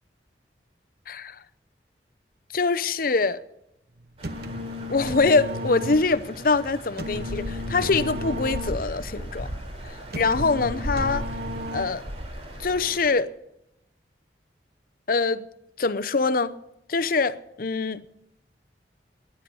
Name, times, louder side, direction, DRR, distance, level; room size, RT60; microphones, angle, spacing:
voice 1, 1.1-1.4 2.5-3.4 4.9-9.5 10.2-11.3 11.7-12.0 12.6-13.3 15.1-15.4 15.8-16.5 16.9-18.0, left 4 dB, 55° left, 0.7 m, -24 dB
sound 1, 4.0-12.3, left 1 dB, 60° right, 1.2 m, -34 dB
sound 2, 4.2-13.1, equal, 35° right, 3.5 m, -37 dB
21.0 x 9.7 x 5.5 m
head